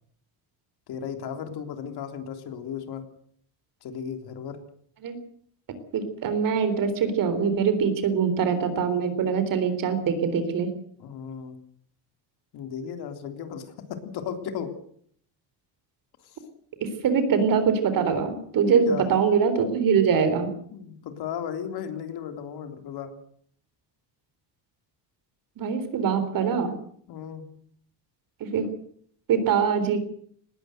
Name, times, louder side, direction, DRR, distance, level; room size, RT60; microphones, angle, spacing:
voice 1, 0.9-3.1 3.8-4.6 11.0-11.6 12.5-14.8 16.2-16.4 18.5-19.2 20.7-23.2 27.1-27.5, left 8 dB, 60° left, 7 dB, 3.5 m, -35 dB
voice 2, 5.9-10.7 16.8-20.5 25.6-26.7 28.4-28.7 29.3-30.0, right 6 dB, 50° right, 11 dB, 3.9 m, -23 dB
19.5 x 17.5 x 7.9 m, 0.63 s
cardioid pair, 160°, 43 cm